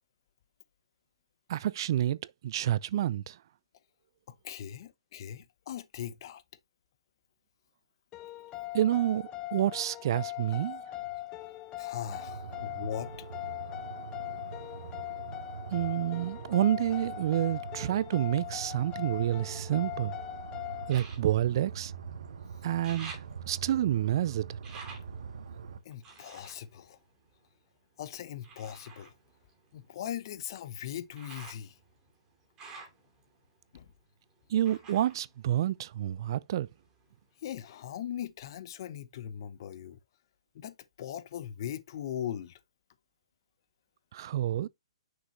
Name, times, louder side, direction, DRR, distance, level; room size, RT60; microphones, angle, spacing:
voice 1, 1.5-3.4 8.7-10.8 15.7-20.1 20.9-21.9 22.6-23.1 23.5-24.6 34.5-36.7 44.1-44.7, right 12 dB, 50° right, 0.3 m, -29 dB
voice 2, 4.3-6.4 11.8-13.3 25.8-27.0 28.0-29.1 29.7-31.8 33.7-33.9 37.4-40.0 40.5-42.6, left 10 dB, 50° left, 0.9 m, -40 dB
sound 1, 8.1-20.9, left 14 dB, 20° left, 0.6 m, -40 dB
sound 2, 12.1-25.8, right 6 dB, 65° right, 1.0 m, -44 dB
sound 3, 18.9-20.0 20.8-22.4 22.6-27.8 28.4-36.3 36.6-37.4 37.9-38.0, right 4 dB, 20° right, 2.4 m, -52 dB
6.2 x 5.0 x 3.1 m
hypercardioid pair, 145°, 3 cm